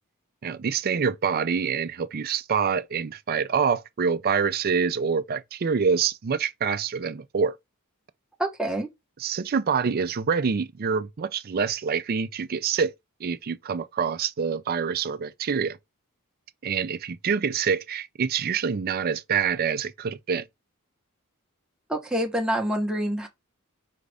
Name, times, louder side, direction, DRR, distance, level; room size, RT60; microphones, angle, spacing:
voice 1, 0.4-7.6 9.2-12.9 13.2-15.8 16.6-20.5, right 6 dB, 45° right, 0.4 m, -26 dB
voice 2, 8.4-8.9 21.9-23.3, right 1 dB, 5° right, 0.9 m, -26 dB
5.0 x 2.5 x 3.3 m
head